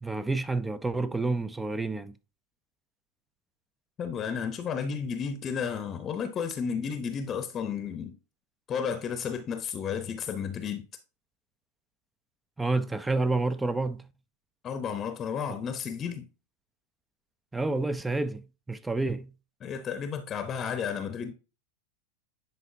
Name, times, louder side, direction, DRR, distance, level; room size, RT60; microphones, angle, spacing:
voice 1, 0.0-2.1 12.6-14.1 15.5-15.6 17.5-19.3, right 3 dB, 10° right, 0.5 m, -29 dB
voice 2, 4.0-8.2 8.7-10.9 14.6-16.3 19.6-21.3, left 7 dB, 30° left, 0.8 m, -32 dB
10.0 x 4.1 x 2.7 m
hypercardioid pair, 95°, 0 cm